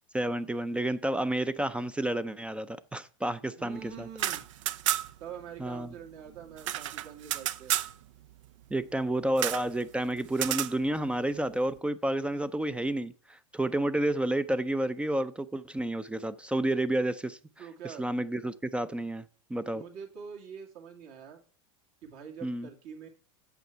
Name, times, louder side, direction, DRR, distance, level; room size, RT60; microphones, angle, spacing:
voice 1, 0.1-4.1 5.6-5.9 8.7-17.4 18.0-19.2 19.5-19.8 22.4-22.7, right 1 dB, 5° right, 0.4 m, -30 dB
voice 2, 3.6-4.4 5.2-7.7 17.6-18.0 19.7-21.4 22.0-23.1, right 7 dB, 55° right, 2.2 m, -45 dB
sound 1, 4.1-5.3 5.6-5.7 5.9-7.9 9.4-9.7 10.3-10.7, right 13 dB, 75° right, 0.5 m, -31 dB
8.2 x 6.4 x 4.5 m
hypercardioid pair, 115°, 16 cm